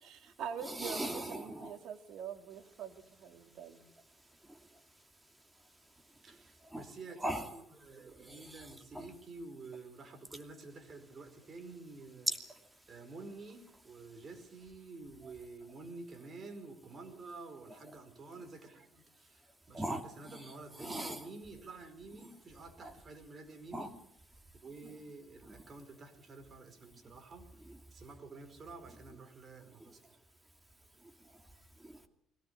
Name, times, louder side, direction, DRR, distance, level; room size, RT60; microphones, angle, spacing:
voice 1, 0.0-3.8, right 7 dB, 65° right, 2.7 m, -44 dB
voice 2, 0.6-1.8 3.4-3.6 4.5-6.9 7.2-7.5 8.2-9.1 12.3-12.9 15.2-15.3 17.9-18.0 19.7-21.3 22.2-22.4 22.8-23.0 23.7-23.9 24.8-24.9 25.4-25.7 27.0-27.2 27.6-27.8 29.7-30.2 31.0-32.1, right 1 dB, 10° right, 2.7 m, -42 dB
voice 3, 6.2-12.3 12.9-24.0 24.6-30.2, right 3 dB, 35° right, 4.7 m, -50 dB
22.0 x 17.5 x 8.4 m
cardioid pair, 115°, 0 cm